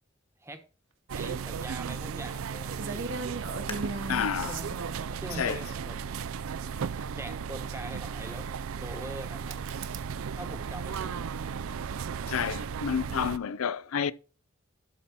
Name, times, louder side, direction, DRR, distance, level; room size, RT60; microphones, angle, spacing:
voice 1, 1.1-3.1 4.5-4.7 5.2-6.0 7.1-9.6 10.3-11.3, right 1 dB, 10° right, 1.0 m, -43 dB
sound 1, 1.1-13.4, right 6 dB, 85° right, 0.4 m, -35 dB
sound 2, 2.8-5.5 6.6-6.7 9.5-10.1 10.4-11.3, right 3 dB, 65° right, 1.1 m, -38 dB
sound 3, 3.7-7.0 7.6-7.7 8.4-8.7 9.1-9.2, left 4 dB, 25° left, 1.2 m, -50 dB
voice 2, 4.1-4.6 5.4-5.6 12.3-14.1, left 7 dB, 90° left, 0.5 m, -29 dB
12.0 x 4.2 x 5.9 m
head